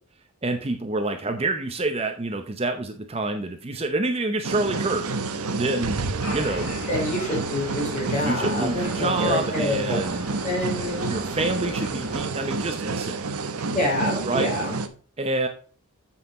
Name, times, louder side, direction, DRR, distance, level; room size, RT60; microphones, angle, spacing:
voice 1, 0.4-5.0 5.5-5.9 6.3-6.7 8.2-10.3 11.1-13.2 14.2-14.5 15.2-15.5, right 2 dB, 25° right, 5 dB, 0.7 m, -27 dB
sound 1, 4.4-14.9, right 3 dB, 85° right, 0.9 m, -29 dB
sound 2, 6.2-12.2, equal, 60° left, 4.9 m, -38 dB
voice 2, 6.9-10.0 10.4-11.1 13.6-14.8, left 1 dB, 35° left, -2 dB, 4.1 m, -27 dB
8.2 x 5.7 x 4.2 m, 0.40 s
head